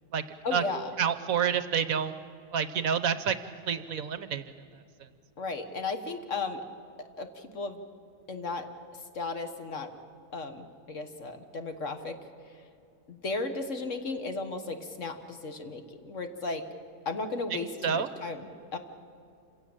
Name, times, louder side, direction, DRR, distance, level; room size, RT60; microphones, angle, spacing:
voice 1, 0.4-0.9 5.4-6.6 7.0-7.8 8.3-8.7 9.1-9.9 10.3-12.2 13.1-16.6 17.0-18.8, left 3 dB, 50° left, 7 dB, 1.7 m, -35 dB
voice 2, 1.0-2.1 2.5-4.4 17.5-18.1, right 7 dB, 65° right, 12 dB, 1.1 m, -28 dB
27.0 x 16.5 x 8.8 m, 2.5 s
omnidirectional pair, 1.8 m